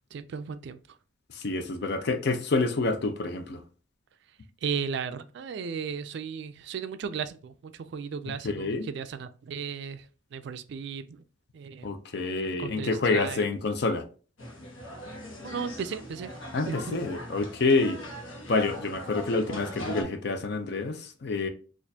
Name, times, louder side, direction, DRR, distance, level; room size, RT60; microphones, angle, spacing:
voice 1, 0.1-0.8 4.6-11.2 11.5-11.9 12.6-13.5 15.1-15.2 15.4-16.4 16.7-17.0, right 6 dB, 60° right, 0.3 m, -35 dB
voice 2, 1.3-3.6 8.4-8.9 11.8-14.0 16.5-18.0 18.5-21.5, left 3 dB, 55° left, 0.5 m, -27 dB
sound 1, 14.4-20.0, equal, 80° left, 1.0 m, -40 dB
4.2 x 2.5 x 2.7 m
head